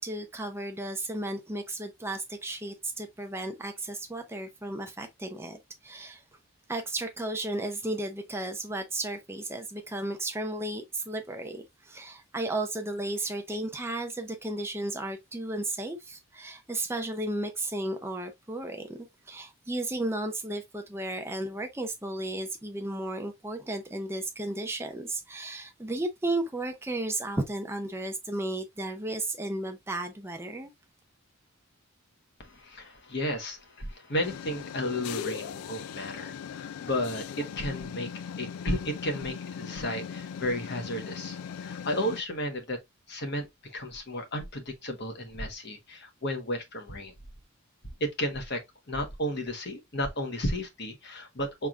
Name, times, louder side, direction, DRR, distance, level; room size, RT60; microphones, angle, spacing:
voice 1, 0.0-6.2 6.7-30.7, right 2 dB, 10° right, 0.5 m, -34 dB
voice 2, 32.4-38.1 38.4-42.8 43.1-47.1 48.0-51.7, equal, 50° left, 1.2 m, -33 dB
sound 1, 34.2-42.2, left 7 dB, 85° left, 0.3 m, -39 dB
5.9 x 3.5 x 2.4 m
head